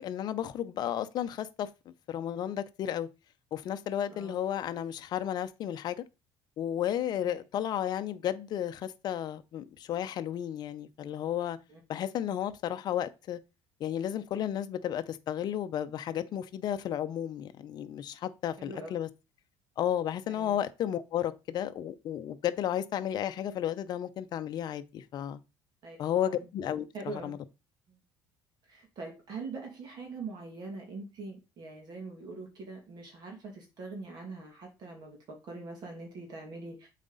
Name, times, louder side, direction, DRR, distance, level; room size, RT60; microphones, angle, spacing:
voice 1, 0.0-3.1 3.5-6.0 6.6-11.6 11.9-13.4 13.8-19.1 19.8-25.4 26.0-27.4, left 10 dB, 45° left, 0.6 m, -33 dB
voice 2, 20.3-20.6 25.8-26.0 26.3-26.4 26.9-27.3 27.9-28.0 28.7-36.9, right 3 dB, 45° right, 2.4 m, -43 dB
7.3 x 4.2 x 4.0 m
cardioid pair, 140°, 10 cm